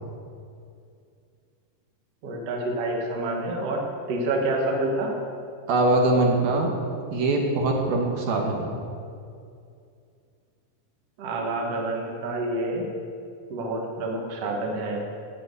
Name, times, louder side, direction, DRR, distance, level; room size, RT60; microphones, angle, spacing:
voice 1, 2.2-5.2 11.2-12.9 13.5-15.0, right 2 dB, 50° right, 0 dB, 2.0 m, -28 dB
voice 2, 5.7-6.7 7.1-8.8, right 2 dB, 70° right, 0 dB, 3.0 m, -22 dB
11.5 x 7.8 x 8.3 m, 2.4 s
omnidirectional pair, 4.6 m